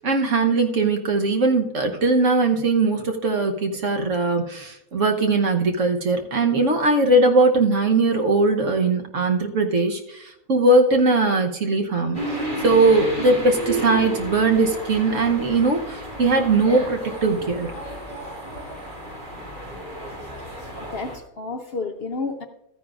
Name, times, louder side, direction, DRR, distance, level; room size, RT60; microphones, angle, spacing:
voice 1, 0.0-12.2 12.6-17.7, right 3 dB, 60° right, 5 dB, 1.3 m, -20 dB
sound 1, 12.1-21.2, right 1 dB, 40° right, 3.1 m, -32 dB
voice 2, 20.9-22.5, left 4 dB, 55° left, 5 dB, 0.7 m, -31 dB
13.5 x 9.9 x 2.4 m, 0.83 s
omnidirectional pair, 1.5 m